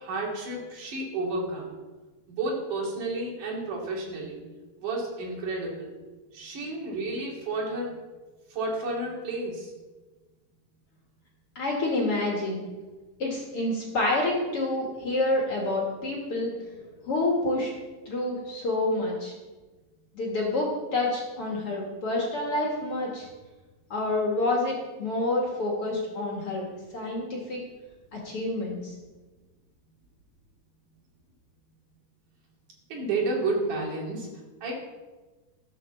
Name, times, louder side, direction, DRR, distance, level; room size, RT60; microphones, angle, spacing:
voice 1, 0.0-1.7 2.3-4.4 4.8-5.9 6.3-8.0 8.5-9.7 32.9-34.3 34.6-34.7, right 2 dB, 55° right, -3 dB, 4.2 m, -31 dB
voice 2, 11.6-12.7 13.2-16.8 17.1-17.7 18.1-19.3 20.1-23.3 23.9-26.6 26.9-27.6 28.1-28.9, left 2 dB, 45° left, -2 dB, 2.3 m, -28 dB
13.0 x 7.3 x 7.0 m, 1.2 s
omnidirectional pair, 4.6 m